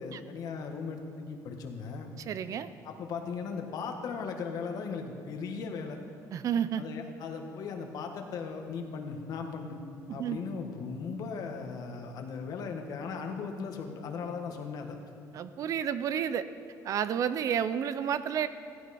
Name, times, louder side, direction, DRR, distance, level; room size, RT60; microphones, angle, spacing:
voice 1, 0.0-2.1 2.8-6.0 6.8-9.8 10.1-15.0, left 5 dB, 65° left, 4 dB, 1.6 m, -37 dB
voice 2, 2.3-2.7 6.3-6.8 10.1-10.4 15.3-16.4 16.8-18.5, right 8 dB, 55° right, 13 dB, 0.6 m, -30 dB
15.5 x 15.5 x 4.3 m, 2.3 s
cardioid pair, 145°, 7 cm